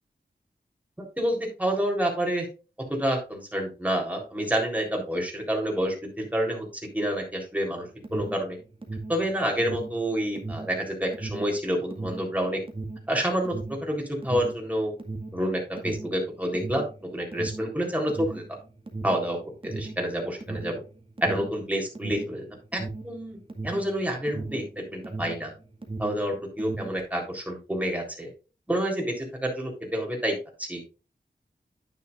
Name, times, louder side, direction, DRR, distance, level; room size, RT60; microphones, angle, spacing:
voice 1, 1.0-2.5 2.9-6.7 6.9-8.6 9.1-12.6 13.1-14.9 15.3-16.9 17.1-18.4 19.0-19.4 19.6-20.8 21.2-22.4 22.7-23.4 23.6-25.5 26.0-28.3 28.7-30.8, equal, 10° right, 0 dB, 3.7 m, -28 dB
Alarm, 8.0-25.5 25.7-27.0, right 3 dB, 30° right, 1.9 m, -37 dB
9.9 x 9.7 x 2.5 m, 0.34 s
wide cardioid pair, 85°, 17 cm